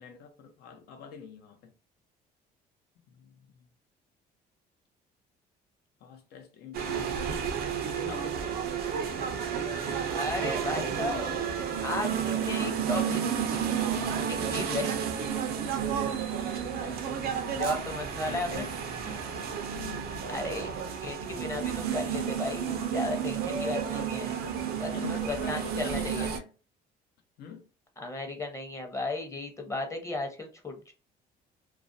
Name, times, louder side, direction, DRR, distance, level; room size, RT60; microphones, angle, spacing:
voice 1, 0.0-1.7 3.1-3.7 6.0-7.4 7.8-8.4 14.8-15.2 16.0-17.9 18.3-18.9 19.7-20.1 24.9-26.5 27.4-27.7, left 6 dB, 75° left, 0.7 m, -45 dB
sound 1, 6.7-26.4, right 7 dB, 65° right, 0.5 m, -31 dB
voice 2, 10.1-11.4 11.8-13.3 14.3-15.0 17.6-18.7 19.0-19.5 20.3-20.7 21.0-24.3 24.8-26.3 28.0-30.9, left 2 dB, 15° left, 0.7 m, -35 dB
2.4 x 2.1 x 2.5 m
cardioid pair, 110°, 17 cm